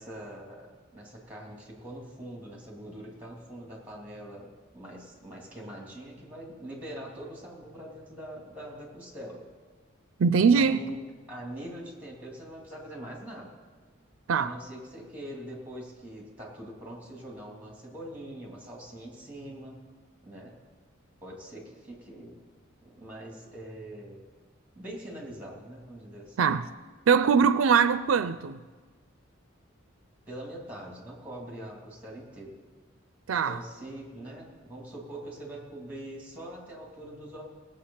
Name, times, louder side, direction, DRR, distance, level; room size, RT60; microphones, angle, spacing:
voice 1, 0.0-9.4 10.5-11.0 11.3-13.5 14.4-19.8 20.2-20.6 21.2-22.4 22.8-24.3 24.7-26.4 30.3-32.6 33.4-37.4, right 1 dB, 10° right, 3.1 m, -43 dB
voice 2, 10.2-10.8 14.3-14.5 26.4-26.7 27.1-28.6 33.3-33.6, right 6 dB, 80° right, 0.4 m, -22 dB
18.5 x 7.8 x 5.7 m
head